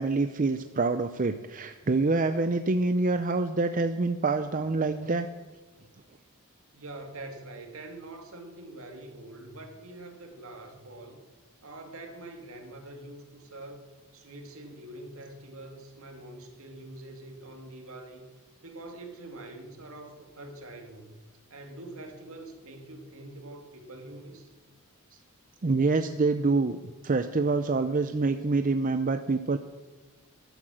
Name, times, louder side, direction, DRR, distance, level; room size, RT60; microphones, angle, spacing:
voice 1, 0.0-5.3 25.6-26.8 27.0-29.6, right 3 dB, 35° right, 9 dB, 0.5 m, -26 dB
voice 2, 6.7-11.2 11.6-13.8 14.1-18.3 18.6-21.1 21.5-24.5, right 2 dB, 65° right, 4 dB, 2.3 m, -44 dB
13.5 x 12.0 x 6.4 m, 1.3 s
head